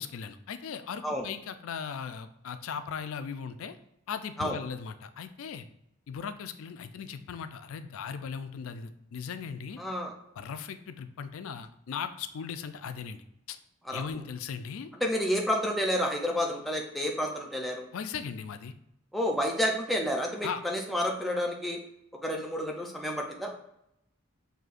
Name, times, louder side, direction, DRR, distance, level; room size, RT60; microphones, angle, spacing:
voice 1, 0.0-3.8 4.1-5.7 6.1-9.8 10.4-13.2 13.5-13.6 13.9-14.9 17.9-18.7 20.4-20.6, left 6 dB, 75° left, 10 dB, 0.4 m, -38 dB
voice 2, 9.8-10.1 13.8-14.0 15.0-17.9 19.1-21.8 22.2-23.5, equal, ahead, 0 dB, 0.5 m, -30 dB
6.2 x 2.7 x 2.5 m, 0.80 s
head